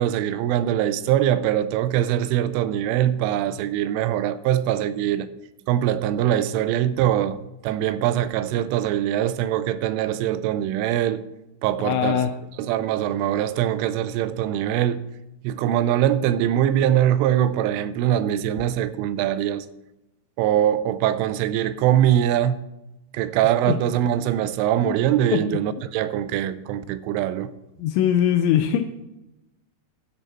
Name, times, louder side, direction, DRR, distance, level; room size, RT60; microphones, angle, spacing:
voice 1, 0.0-5.3 5.7-11.2 11.6-12.2 12.6-15.0 15.4-19.7 20.4-22.6 23.1-27.5, right 11 dB, 85° right, 3.1 m, -22 dB
voice 2, 11.8-12.3 23.7-23.8 24.8-25.0 25.3-25.4 27.8-29.0, left 9 dB, 85° left, 2.6 m, -21 dB
13.0 x 6.9 x 4.3 m
omnidirectional pair, 5.6 m